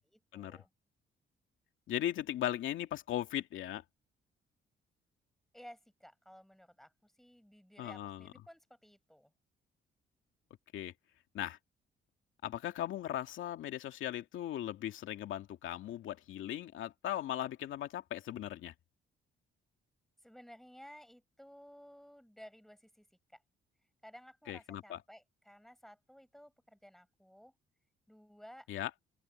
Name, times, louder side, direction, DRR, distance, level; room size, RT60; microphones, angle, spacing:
voice 1, 0.0-0.7 5.5-9.3 20.2-23.1 23.3-23.4 24.0-27.5 28.1-28.7, equal, ahead, 6.7 m, -56 dB
voice 2, 1.9-3.8 7.8-8.3 10.7-10.9 11.3-11.6 12.4-18.7 24.5-25.0 28.7-28.9, left 12 dB, 80° left, 2.4 m, -38 dB
open air
cardioid pair, 90°, 20 cm